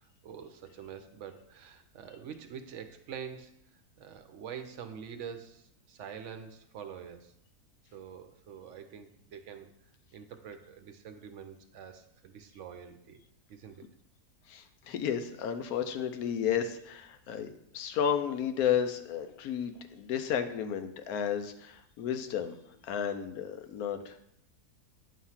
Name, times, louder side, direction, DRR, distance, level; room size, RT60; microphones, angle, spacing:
voice 1, 0.0-3.5 4.0-7.3 7.9-9.7 10.1-13.2 13.5-13.9, right 7 dB, 60° right, 7 dB, 0.9 m, -45 dB
voice 2, 14.5-17.5 17.7-22.6 22.8-24.1, left 8 dB, 75° left, 8 dB, 1.1 m, -32 dB
9.3 x 3.1 x 5.6 m, 0.75 s
omnidirectional pair, 1.7 m